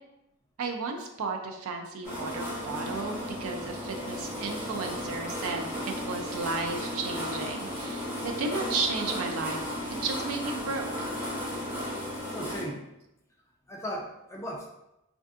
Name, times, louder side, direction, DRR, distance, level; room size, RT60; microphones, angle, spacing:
voice 1, 0.6-9.8 10.0-11.1, right 3 dB, 80° right, 4 dB, 0.5 m, -34 dB
sound 1, 2.0-12.6, equal, 10° right, 1.1 m, -35 dB
voice 2, 12.3-12.9 13.7-14.7, equal, 15° left, -1 dB, 0.3 m, -36 dB
3.4 x 2.5 x 2.4 m, 0.87 s
head